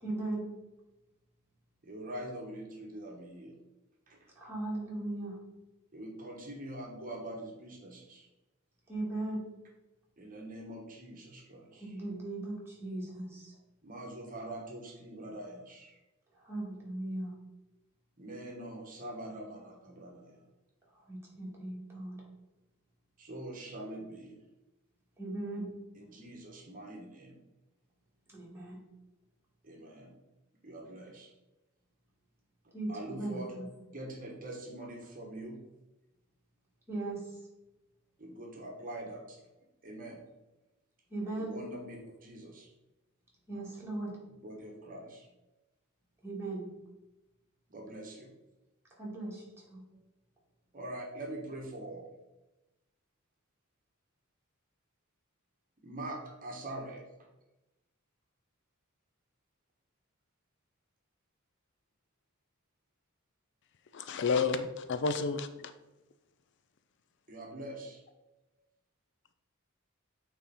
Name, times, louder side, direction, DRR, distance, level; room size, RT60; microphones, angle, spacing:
voice 1, 0.0-0.5 4.4-5.4 8.9-9.4 11.8-13.5 16.4-17.3 21.1-22.2 25.2-25.7 28.3-28.8 32.7-33.7 36.9-37.3 41.1-41.6 43.5-44.2 46.2-46.7 49.0-49.8, right 2 dB, 10° right, -5 dB, 2.5 m, -38 dB
voice 2, 1.8-3.5 4.1-4.2 5.9-8.3 10.2-12.0 13.8-16.0 18.2-20.4 23.2-24.4 25.9-27.4 29.6-30.1 30.6-31.3 32.9-33.5 33.9-35.6 38.2-39.4 39.8-40.2 41.4-42.7 44.4-45.3 47.7-48.3 50.7-52.0 55.8-57.3 67.3-68.0, right 1 dB, 40° right, 0 dB, 1.3 m, -44 dB
voice 3, 63.9-65.7, left 5 dB, 60° left, 10 dB, 0.4 m, -31 dB
8.8 x 3.6 x 4.2 m, 1.0 s
head